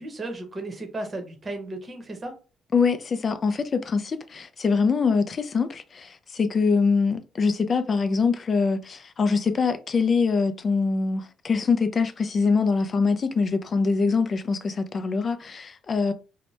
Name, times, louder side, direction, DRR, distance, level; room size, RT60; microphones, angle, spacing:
voice 1, 0.0-2.3, right 2 dB, 30° right, 0.8 m, -34 dB
voice 2, 2.7-16.1, left 4 dB, 40° left, 0.3 m, -24 dB
2.7 x 2.0 x 3.1 m
cardioid pair, 110°, 0 cm